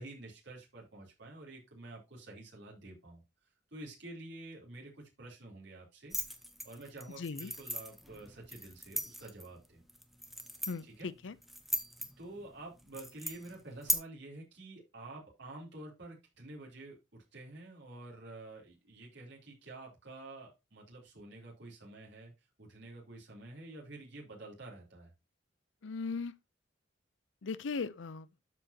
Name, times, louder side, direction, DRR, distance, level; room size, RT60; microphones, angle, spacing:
voice 1, 0.0-3.2 3.7-6.1 6.6-9.8 10.8-11.1 12.2-22.3 22.6-25.1, right 2 dB, 65° right, 3.6 m, -49 dB
sound 1, 6.1-14.0, equal, ahead, 1.0 m, -39 dB
voice 2, 7.2-7.5 10.7-11.3 25.8-26.3 27.4-28.3, left 4 dB, 75° left, 0.6 m, -38 dB
12.5 x 4.9 x 2.9 m
head